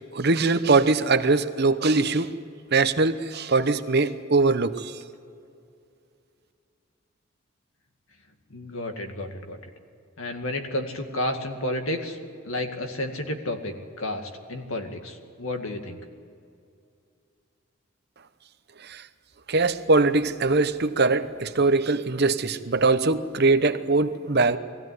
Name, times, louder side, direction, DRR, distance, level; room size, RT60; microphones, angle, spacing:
voice 1, 0.1-2.3 2.7-4.9 18.9-19.0 19.5-24.6, right 3 dB, 50° right, 11 dB, 0.9 m, -22 dB
voice 2, 8.5-9.6 10.2-12.2 12.4-16.0, left 1 dB, 80° left, 5 dB, 2.2 m, -31 dB
21.5 x 16.0 x 9.6 m, 2.5 s
head